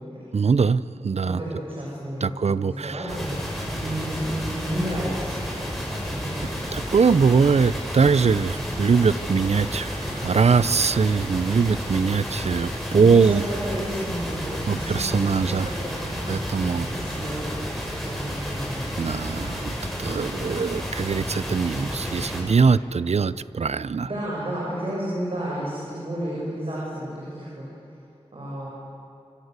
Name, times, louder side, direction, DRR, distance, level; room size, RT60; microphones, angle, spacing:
voice 1, 0.3-1.4 2.2-3.1 6.7-13.4 14.7-15.7 16.3-16.9 19.0-19.7 20.0-24.1, right 5 dB, 70° right, 17 dB, 0.6 m, -22 dB
voice 2, 1.2-3.3 3.7-5.6 6.0-6.4 6.6-7.0 12.9-16.1 16.8-18.8 24.0-27.6 28.3-28.7, right 1 dB, 50° right, -5 dB, 7.7 m, -32 dB
sound 1, 3.1-22.4, equal, ahead, 7.5 m, -31 dB
28.5 x 25.0 x 8.2 m, 2.8 s
wide cardioid pair, 80°, 11 cm